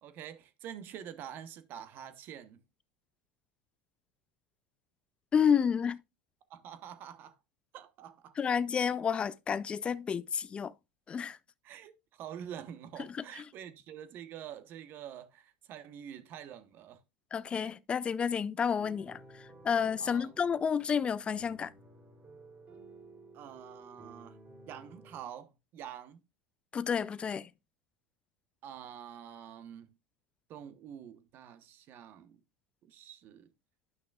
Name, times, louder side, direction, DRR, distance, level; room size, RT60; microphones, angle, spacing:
voice 1, 0.0-2.6 6.5-7.4 7.7-8.4 11.6-17.0 20.0-20.3 23.3-24.4 24.7-26.2 28.6-29.9 30.5-32.4 32.8-33.5, right 9 dB, 45° right, 1.0 m, -47 dB
voice 2, 5.3-6.0 8.4-10.7 11.1-11.4 13.0-13.4 17.3-21.7 26.7-27.5, left 7 dB, 25° left, 0.4 m, -30 dB
sound 1, 18.8-25.2, right 2 dB, 30° right, 2.7 m, -55 dB
10.5 x 5.8 x 2.3 m
supercardioid pair, 110°, 5 cm